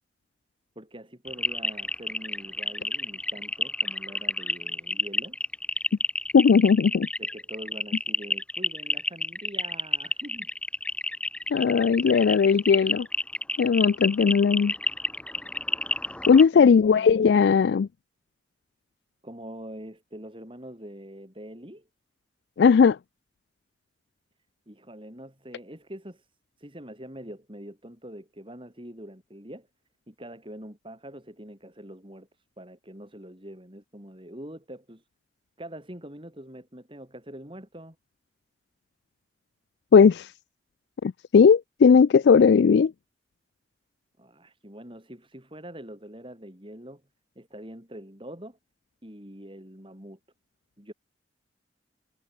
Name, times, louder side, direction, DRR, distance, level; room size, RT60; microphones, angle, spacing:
voice 1, 0.7-5.4 7.2-10.5 16.3-17.2 19.2-21.9 24.7-26.3 26.6-29.7 30.1-35.1 35.6-38.0 44.2-47.0 47.3-48.6 49.0-50.2 50.8-50.9, right 1 dB, 30° right, 6.5 m, -44 dB
sound 1, 1.3-16.4, left 2 dB, 5° left, 0.4 m, -29 dB
voice 2, 6.3-7.1 11.5-13.1 13.6-14.7 16.3-17.9 22.6-23.0 39.9-40.3 41.0-42.9, left 6 dB, 70° left, 0.3 m, -18 dB
head